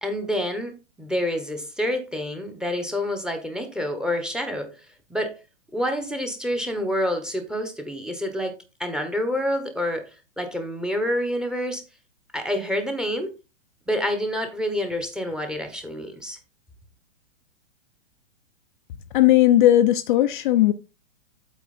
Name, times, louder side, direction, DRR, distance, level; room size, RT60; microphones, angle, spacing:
voice 1, 0.0-4.7 5.1-5.3 5.7-8.5 8.8-10.1 10.4-11.8 12.3-13.3 13.9-16.4, equal, ahead, 1.1 m, -27 dB
voice 2, 19.1-20.7, left 13 dB, 45° left, 0.6 m, -17 dB
8.3 x 4.6 x 4.3 m
hypercardioid pair, 140°, 35 cm